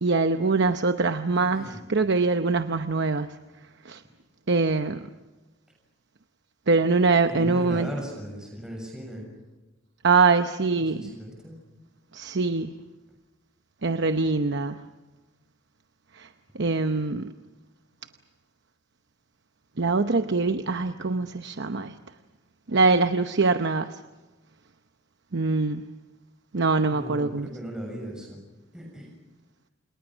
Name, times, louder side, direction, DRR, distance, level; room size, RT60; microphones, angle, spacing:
voice 1, 0.0-1.6 1.9-3.4 3.8-4.0 4.5-5.1 6.7-7.9 10.0-11.0 12.1-12.8 13.8-14.8 16.1-16.3 16.5-17.3 19.8-21.9 22.7-23.9 25.3-25.9 26.5-27.5, right 3 dB, 60° right, 8 dB, 0.9 m, -23 dB
voice 2, 1.3-1.8 7.3-9.2 10.8-11.5 26.9-28.4 28.7-29.1, equal, 5° right, 0 dB, 6.9 m, -37 dB
29.0 x 28.5 x 6.2 m, 1.2 s
head